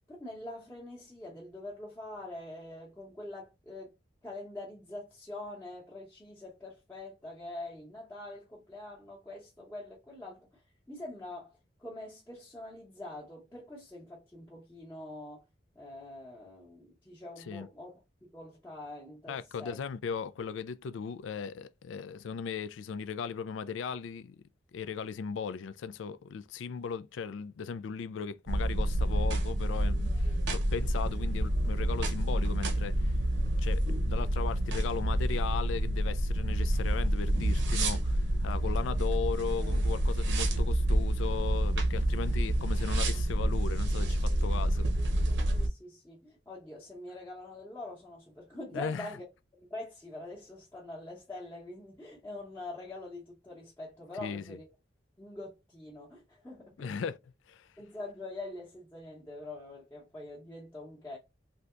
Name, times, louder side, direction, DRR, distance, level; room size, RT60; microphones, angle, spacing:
voice 1, 0.1-3.9 4.2-10.5 10.9-11.5 11.8-15.4 15.8-17.9 18.2-19.8 45.5-49.2 49.7-54.7 55.2-57.0 57.8-61.2, left 2 dB, 10° left, 0.8 m, -44 dB
voice 2, 19.3-24.4 24.7-33.1 33.6-44.9 48.7-49.2 54.2-54.6 56.8-57.7, left 6 dB, 85° left, 0.4 m, -37 dB
sound 1, 28.5-45.7, right 1 dB, 70° right, 0.7 m, -28 dB
3.3 x 2.7 x 2.4 m
head